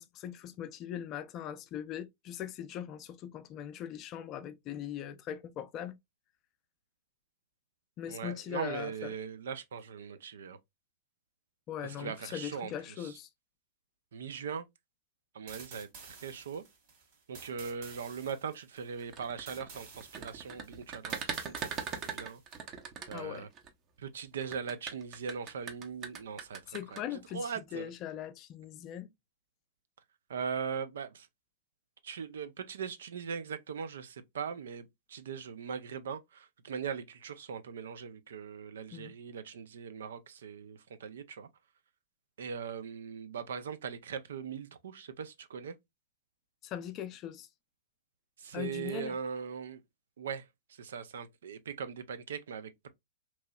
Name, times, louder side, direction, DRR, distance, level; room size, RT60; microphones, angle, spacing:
voice 1, 0.0-6.0 8.0-9.1 11.7-13.3 23.1-23.5 26.7-29.1 38.9-39.1 46.6-47.5 48.5-49.2, left 10 dB, 40° left, 0.4 m, -40 dB
voice 2, 8.1-10.6 11.8-13.2 14.1-14.7 15.3-16.6 17.3-22.4 23.1-23.5 24.0-27.9 30.3-31.3 32.0-41.5 42.4-45.7 48.4-49.8 50.2-52.9, right 6 dB, 75° right, 0.4 m, -40 dB
sound 1, 15.5-22.6, right 5 dB, 55° right, 1.7 m, -52 dB
sound 2, 19.0-23.7 24.4-27.0, right 6 dB, 35° right, 0.6 m, -40 dB
2.9 x 2.8 x 2.2 m
hypercardioid pair, 110°, 0 cm